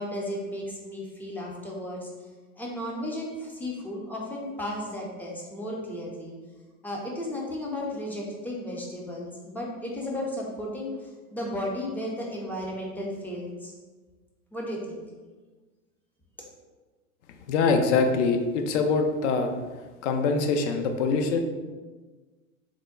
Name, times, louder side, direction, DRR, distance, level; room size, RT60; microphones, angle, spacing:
voice 1, 0.0-2.1 2.6-6.3 6.8-13.7 14.5-15.0, left 1 dB, 5° left, -2 dB, 0.4 m, -34 dB
voice 2, 17.5-19.5 20.0-21.4, left 4 dB, 55° left, 5 dB, 0.6 m, -24 dB
3.6 x 2.2 x 3.5 m, 1.3 s
hypercardioid pair, 110°, 42 cm